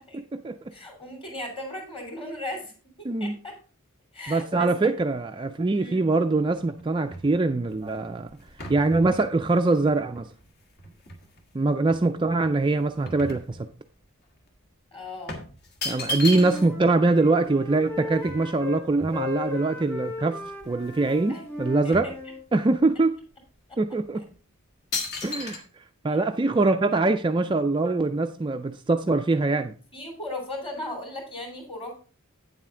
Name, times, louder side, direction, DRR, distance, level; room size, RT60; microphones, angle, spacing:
voice 1, 0.1-0.6 3.0-3.3 4.3-8.3 8.7-10.3 11.5-13.7 15.8-20.4 20.7-22.1 22.5-23.1 23.8-24.2 25.2-29.7, right 3 dB, 20° right, 6 dB, 0.3 m, -23 dB
voice 2, 0.7-2.7 3.0-3.5 4.1-4.7 5.8-6.1 14.9-15.4 21.3-21.4 21.8-22.1 23.7-23.8 26.1-26.2 29.9-31.9, left 1 dB, 25° left, 3 dB, 3.0 m, -37 dB
sound 1, 6.5-11.4 11.9-14.1 14.4-14.5 15.3-16.9 17.2-17.3 17.4-19.6 20.1-20.2 20.5-21.3 21.5-22.8 23.4-23.5 24.1-24.4 24.9-25.6, left 1 dB, 45° left, 1.5 m, -36 dB
Wind instrument woodwind instrument, 16.0-18.8 19.1-22.4, left 3 dB, 10° left, 1.6 m, -37 dB
9.0 x 7.5 x 3.7 m, 0.38 s
head